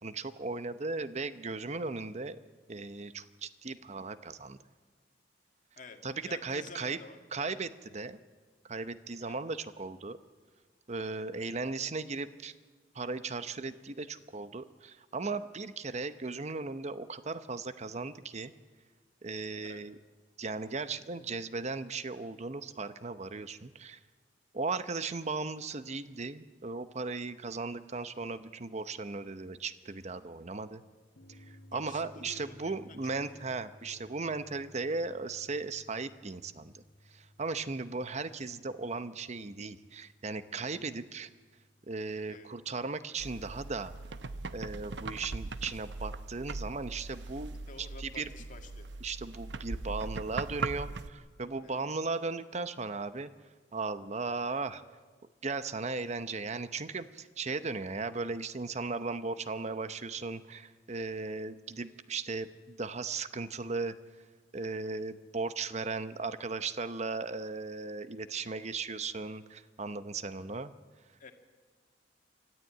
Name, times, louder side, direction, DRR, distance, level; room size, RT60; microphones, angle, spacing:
voice 1, 0.0-2.4 2.7-4.6 6.0-7.0 7.3-8.2 8.6-10.2 10.9-12.5 12.9-18.5 19.2-19.9 20.4-24.0 24.5-30.8 31.3-36.8 37.1-41.3 41.9-43.9 44.5-48.3 49.0-53.3 53.7-54.8 55.4-64.0 64.5-70.7, right 3 dB, 40° right, 13 dB, 0.8 m, -37 dB
voice 2, 6.2-7.2 9.2-9.4 19.6-19.8 31.7-33.0 33.3-33.4 33.8-34.0 42.3-42.5 47.7-48.9 51.6-51.9 71.2-71.3, left 3 dB, 45° left, 5 dB, 2.0 m, -50 dB
sound 1, 31.2-44.1, left 1 dB, 80° left, 1.7 m, -60 dB
sound 2, 43.2-51.1, right 3 dB, 80° right, 0.8 m, -40 dB
24.5 x 14.0 x 9.1 m, 1.5 s
head